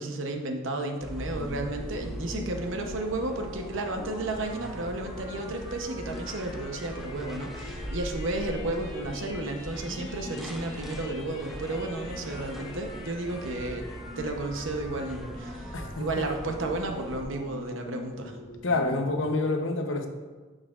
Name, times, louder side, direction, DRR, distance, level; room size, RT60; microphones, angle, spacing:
voice 1, 0.0-13.9 14.2-18.4, right 2 dB, 65° right, 4 dB, 0.8 m, -33 dB
sound 1, 1.0-17.2, equal, ahead, 0.5 m, -40 dB
sound 2, 1.1-19.2, left 2 dB, 85° left, 1.2 m, -45 dB
voice 2, 15.7-16.3 18.6-20.1, left 2 dB, 65° left, 5 dB, 0.7 m, -28 dB
8.8 x 6.6 x 2.4 m, 1.4 s
head